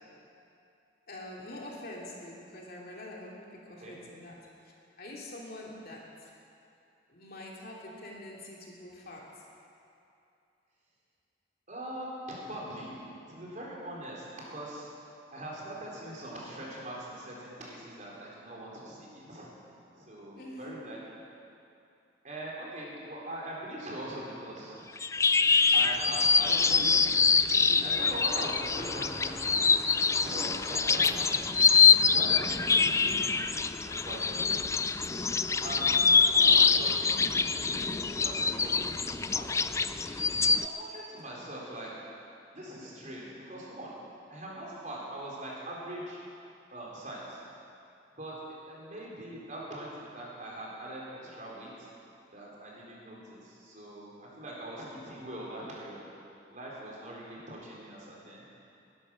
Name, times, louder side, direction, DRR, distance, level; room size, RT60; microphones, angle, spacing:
voice 1, 1.1-4.3 4.6-6.3 7.1-9.3 12.5-13.1 20.4-20.7, left 1 dB, 55° left, -3 dB, 2.8 m, -45 dB
voice 2, 11.7-14.9 15.3-19.5 19.9-21.2 22.2-24.8 25.7-27.2 27.8-29.7 30.2-31.4 32.1-34.5 35.6-36.0 36.3-37.1 37.7-39.7 40.5-41.9 42.5-44.0 44.3-46.2 46.7-47.4 48.2-48.4 48.7-51.9 52.3-56.0 56.5-58.4, right 1 dB, 45° right, -4 dB, 4.1 m, -42 dB
sound 1, 25.0-40.7, left 5 dB, 15° left, 0.3 m, -25 dB
19.5 x 11.0 x 6.3 m, 2.6 s
head